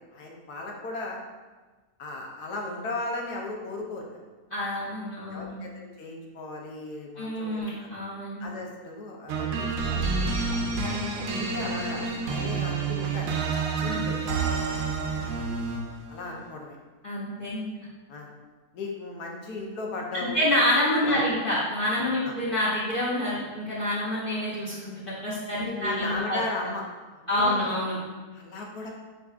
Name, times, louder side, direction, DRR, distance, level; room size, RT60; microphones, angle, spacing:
voice 1, 0.1-1.2 2.0-4.0 5.3-7.9 8.4-10.1 11.3-13.3 13.8-14.2 14.5-14.6 16.1-16.8 18.1-18.3 18.7-20.4 21.0-21.2 22.2-22.3 25.6-26.8 27.1-27.6 28.3-28.9, left 2 dB, 85° left, 0 dB, 1.3 m, -36 dB
voice 2, 4.5-5.5 7.2-8.5 10.8-11.0 13.8-14.0 15.2-15.3 17.0-17.6 20.1-26.4 27.3-28.0, left 1 dB, 45° left, -8 dB, 0.8 m, -27 dB
sound 1, 9.3-16.0, right 4 dB, 65° right, 0.9 m, -29 dB
7.9 x 2.7 x 2.4 m, 1.3 s
omnidirectional pair, 1.6 m